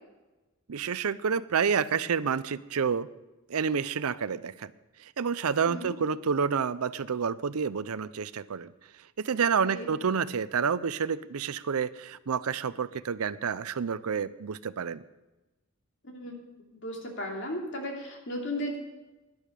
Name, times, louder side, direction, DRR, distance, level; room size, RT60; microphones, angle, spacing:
voice 1, 0.7-3.1 3.5-4.7 5.0-8.7 9.2-15.0, right 6 dB, 90° right, 16 dB, 0.6 m, -29 dB
voice 2, 16.0-16.4 16.7-18.8, left 1 dB, 55° left, 0 dB, 2.9 m, -35 dB
12.0 x 11.0 x 6.8 m, 1.1 s
head